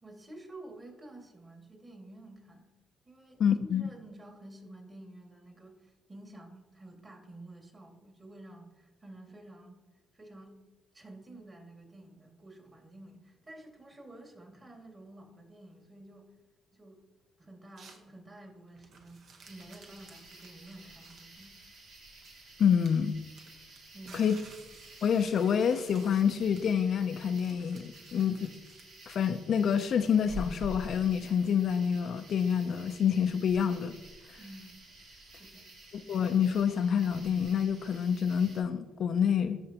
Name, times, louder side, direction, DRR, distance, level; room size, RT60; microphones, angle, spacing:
voice 1, 0.0-2.7 3.1-9.8 10.1-10.6 10.9-16.3 16.7-17.0 17.4-21.6 23.9-24.4 34.4-34.8 35.4-35.7, right 1 dB, 30° right, 1 dB, 2.0 m, -51 dB
voice 2, 3.4-3.9 22.6-23.1 24.1-24.4 25.0-28.5 29.1-34.0 34.3-34.4 35.9-39.6, left 7 dB, 60° left, 9 dB, 0.4 m, -27 dB
sound 1, 17.8-18.1 18.7-22.5 22.8-29.1, right 4 dB, 65° right, 1.1 m, -56 dB
sound 2, 19.4-38.6, right 1 dB, 90° right, 2.5 m, -50 dB
12.5 x 4.2 x 2.9 m, 1.2 s
cardioid pair, 90°, 0 cm